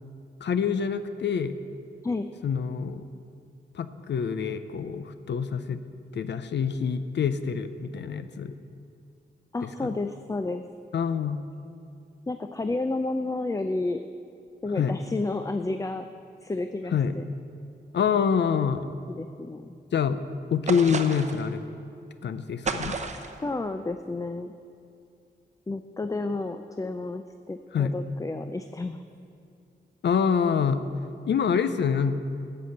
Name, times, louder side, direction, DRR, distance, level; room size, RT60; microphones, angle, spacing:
voice 1, 0.4-1.6 2.4-3.1 3.7-5.8 6.1-8.5 10.9-11.4 14.8-15.0 16.9-17.1 17.9-18.8 19.9-20.2 20.5-21.6 22.2-23.0 27.7-27.9 30.0-30.8 31.3-32.1, left 7 dB, 80° left, 12 dB, 0.5 m, -26 dB
voice 2, 9.5-10.6 12.3-14.1 14.6-16.1 16.4-17.3 19.1-19.8 23.4-24.5 25.7-29.0, left 2 dB, 20° left, 8 dB, 0.4 m, -31 dB
sound 1, 20.7-21.5 22.6-23.4, right 4 dB, 40° right, 0.8 m, -31 dB
11.0 x 6.8 x 7.8 m, 2.5 s
wide cardioid pair, 90°, 18 cm